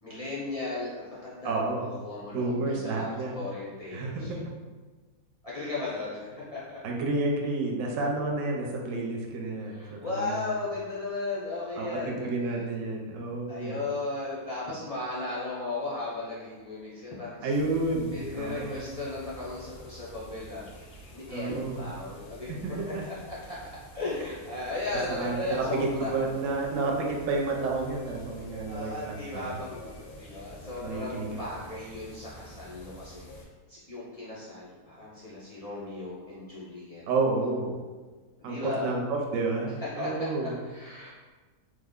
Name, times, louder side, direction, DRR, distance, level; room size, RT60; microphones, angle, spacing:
voice 1, 0.0-1.5 1.8-3.1 3.3-4.4 5.4-6.6 9.7-12.3 13.5-17.5 18.1-20.7 21.1-23.6 23.9-26.1 28.7-33.4 33.7-37.0 38.4-38.9 39.8-40.1 40.4-41.1, left 2 dB, 45° left, -8 dB, 0.4 m, -36 dB
voice 2, 1.4-1.9 2.3-3.4 3.9-4.2 6.8-10.5 11.7-13.8 17.4-18.9 21.3-21.9 22.5-23.0 25.1-29.5 30.8-31.4 37.1-37.8 38.4-40.6, right 3 dB, 65° right, 0 dB, 0.9 m, -30 dB
sound 1, 17.5-33.5, right 1 dB, 90° left, 1.2 m, -48 dB
3.2 x 2.1 x 3.6 m, 1.3 s
omnidirectional pair, 1.6 m